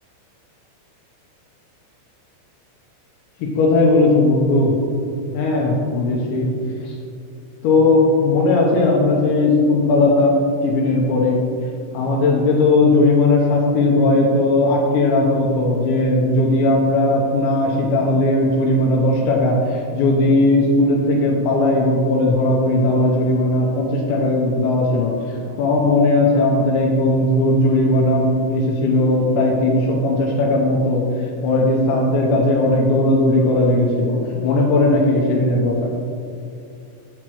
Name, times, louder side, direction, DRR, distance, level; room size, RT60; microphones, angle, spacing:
voice 1, 3.4-4.8 5.3-6.5 6.9-7.0 7.6-11.4 11.9-31.1 31.4-35.9, left 2 dB, 80° left, -1 dB, 2.7 m, -17 dB
8.6 x 8.0 x 3.0 m, 2.6 s
omnidirectional pair, 5.9 m